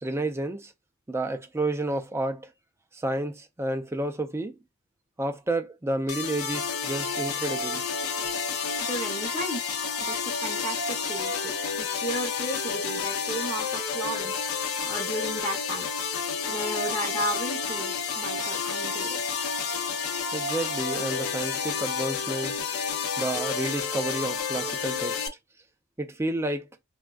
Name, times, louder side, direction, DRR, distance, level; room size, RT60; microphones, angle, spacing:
voice 1, 0.0-0.7 1.1-2.5 2.9-4.6 5.2-7.8 19.8-20.0 20.3-22.6 23.2-25.3 26.0-26.7, right 1 dB, 10° right, 0.3 m, -30 dB
sound 1, 6.1-25.3, left 5 dB, 85° left, 0.6 m, -30 dB
voice 2, 8.8-15.9 16.5-19.2, right 1 dB, 20° left, 0.7 m, -34 dB
3.4 x 2.2 x 2.3 m
head